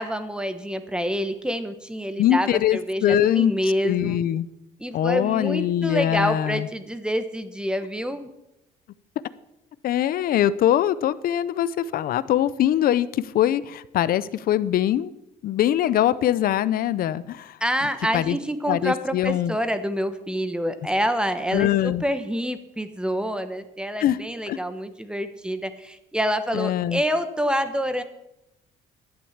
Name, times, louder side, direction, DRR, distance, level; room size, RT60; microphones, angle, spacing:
voice 1, 0.0-4.2 4.8-8.3 17.6-28.0, equal, 5° right, 10 dB, 1.1 m, -27 dB
voice 2, 2.2-3.5 3.8-4.5 4.9-6.7 9.8-15.1 15.4-17.6 18.1-18.4 18.7-19.6 21.5-22.0 24.0-24.2 24.5-24.6 26.5-27.0, left 11 dB, 60° left, 17 dB, 0.6 m, -22 dB
11.5 x 8.7 x 7.3 m, 0.87 s
cardioid pair, 110°, 17 cm